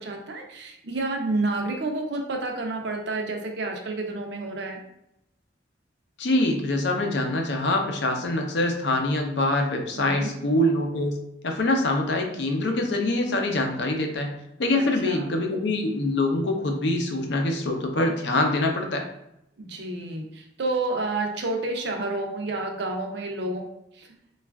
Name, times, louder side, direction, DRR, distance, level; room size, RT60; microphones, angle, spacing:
voice 1, 0.0-4.8 10.0-10.3 14.7-15.3 19.6-23.7 23.9-24.1, right 2 dB, 60° right, 3 dB, 0.5 m, -30 dB
voice 2, 6.2-11.2 11.4-19.1, left 1 dB, 65° left, 3 dB, 0.5 m, -24 dB
4.1 x 2.4 x 2.3 m, 0.81 s
head